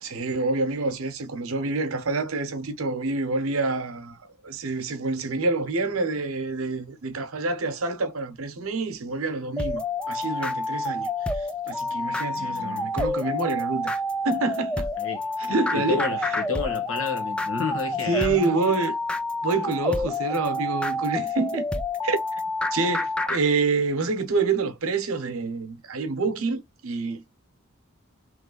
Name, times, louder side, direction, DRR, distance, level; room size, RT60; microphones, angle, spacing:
voice 1, 0.0-4.2 4.4-13.9 14.2-14.9 15.4-16.0 18.1-19.0 19.4-21.6 22.0-22.4 22.7-27.3, right 3 dB, 85° right, 0.9 m, -27 dB
sound 1, 9.6-23.4, left 2 dB, 5° left, 0.3 m, -28 dB
voice 2, 12.3-12.9 15.0-15.2 15.7-18.6, left 5 dB, 70° left, 1.4 m, -31 dB
3.2 x 3.2 x 3.9 m
head